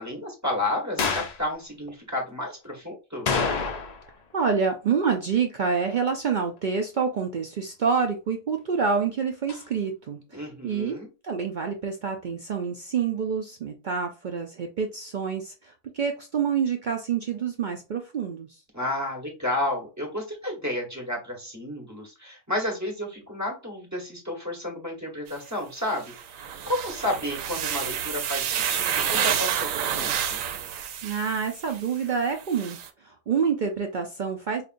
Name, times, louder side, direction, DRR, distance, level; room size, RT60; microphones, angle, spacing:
voice 1, 0.0-3.3 10.3-11.1 18.7-30.4, left 1 dB, 15° right, 1 dB, 1.2 m, -31 dB
sound 1, 1.0-1.4 3.3-4.1 4.4-4.5 9.5-9.6, left 5 dB, 65° left, 0.4 m, -27 dB
voice 2, 4.3-11.0 11.2-18.6 31.0-34.6, right 6 dB, 65° right, 4 dB, 0.4 m, -27 dB
sound 2, 25.3-25.4 25.9-32.0 32.4-32.9, right 9 dB, 85° right, 1.0 m, -29 dB
5.1 x 2.5 x 2.5 m, 0.31 s
omnidirectional pair, 1.4 m